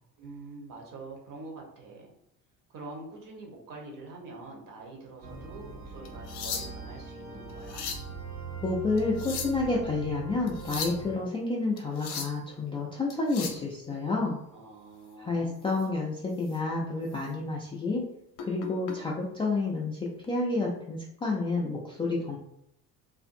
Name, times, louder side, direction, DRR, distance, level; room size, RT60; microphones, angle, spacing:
voice 1, 0.2-2.1 2.7-7.9 14.5-15.7, right 3 dB, 40° right, 0 dB, 1.0 m, -45 dB
sound 1, 5.2-11.1, right 5 dB, 75° right, 0.9 m, -41 dB
sound 2, 6.1-7.0 7.5-8.1 9.0-9.7 10.5-11.0 11.8-12.4 13.1-13.6 15.7-15.9 16.4-16.6 17.1-17.2 18.4-19.0 20.1-20.3, left 6 dB, 55° left, 0.7 m, -37 dB
voice 2, 8.6-14.4 15.2-18.0 18.5-20.0 20.3-22.4, left 3 dB, 15° left, -4 dB, 0.3 m, -29 dB
2.6 x 2.5 x 2.5 m, 0.74 s
figure-of-eight pair, 55°, 49 cm